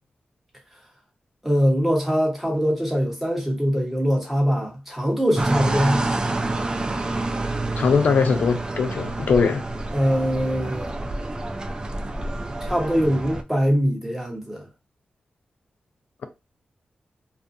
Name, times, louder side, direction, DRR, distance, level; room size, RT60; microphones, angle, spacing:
voice 1, 1.4-6.0 9.9-10.9 12.6-14.7, equal, 5° right, 1.1 m, -22 dB
sound 1, 5.4-13.4, right 2 dB, 30° right, 0.4 m, -28 dB
voice 2, 7.7-9.7, left 5 dB, 75° left, 0.3 m, -20 dB
2.4 x 2.2 x 2.6 m
cardioid pair, 75°, 3 cm